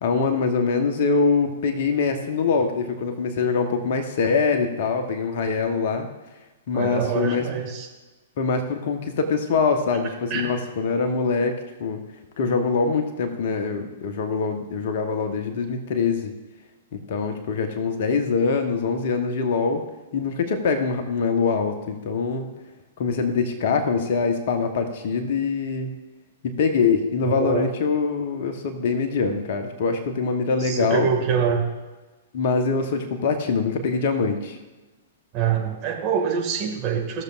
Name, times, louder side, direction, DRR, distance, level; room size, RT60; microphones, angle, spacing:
voice 1, 0.0-6.1 6.7-7.5 8.4-12.0 12.4-16.3 16.9-19.8 20.1-22.5 23.0-25.9 26.4-31.1 32.3-34.6, left 4 dB, 50° left, 6 dB, 1.1 m, -24 dB
voice 2, 6.7-7.9 10.3-10.4 27.2-27.7 30.6-31.7 35.3-37.2, right 7 dB, 35° right, 0 dB, 2.1 m, -25 dB
16.0 x 6.7 x 2.5 m, 1.2 s
figure-of-eight pair, 110°, 0 cm